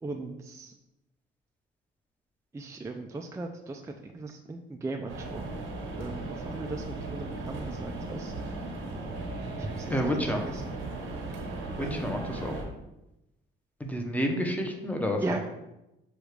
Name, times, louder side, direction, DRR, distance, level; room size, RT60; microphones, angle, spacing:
voice 1, 0.0-0.7 2.5-5.6 6.0-8.3 9.6-10.8 11.8-12.3 15.2-15.4, right 2 dB, 15° right, 3 dB, 0.4 m, -38 dB
sound 1, 5.1-12.6, right 2 dB, 85° right, 1.0 m, -37 dB
voice 2, 9.9-10.4 11.8-12.5 13.8-15.2, equal, 5° left, 3 dB, 0.7 m, -29 dB
6.2 x 2.4 x 3.2 m, 0.91 s
cardioid pair, 90°, 20 cm